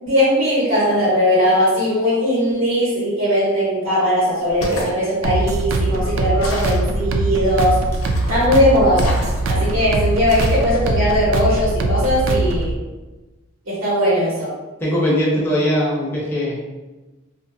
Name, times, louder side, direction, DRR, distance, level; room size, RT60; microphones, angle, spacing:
voice 1, 0.0-7.8 8.3-9.2 9.5-12.7 13.7-14.5, equal, 85° right, -8 dB, 0.9 m, -19 dB
sound 1, 4.4-5.0 6.4-6.9 7.9-8.4 8.9-9.6 10.3-10.7, left 1 dB, 90° left, 0.6 m, -29 dB
sound 2, 5.2-12.7, right 2 dB, 70° right, 0.3 m, -21 dB
voice 2, 14.8-16.6, equal, 10° left, -6 dB, 0.4 m, -20 dB
2.8 x 2.2 x 2.6 m, 1.2 s
head